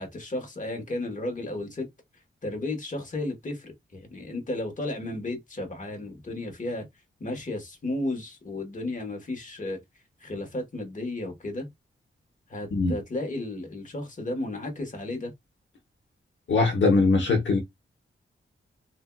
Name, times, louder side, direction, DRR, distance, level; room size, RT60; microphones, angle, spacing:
voice 1, 0.0-1.9 2.4-6.9 7.2-9.8 10.2-11.7 12.5-15.3, left 2 dB, 35° left, 1.2 m, -33 dB
voice 2, 16.5-17.6, left 3 dB, 65° left, 0.9 m, -21 dB
3.3 x 2.6 x 2.2 m
wide cardioid pair, 105°, 21 cm